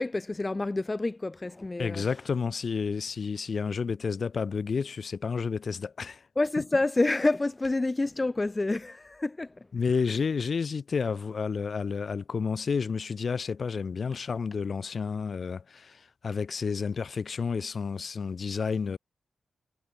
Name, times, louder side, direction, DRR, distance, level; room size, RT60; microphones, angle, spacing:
voice 1, 0.0-2.1 6.4-9.5, left 2 dB, 25° left, 0.5 m, -28 dB
voice 2, 1.8-6.2 9.7-19.0, left 5 dB, 60° left, 1.1 m, -30 dB
cardioid pair, 85°, 0 cm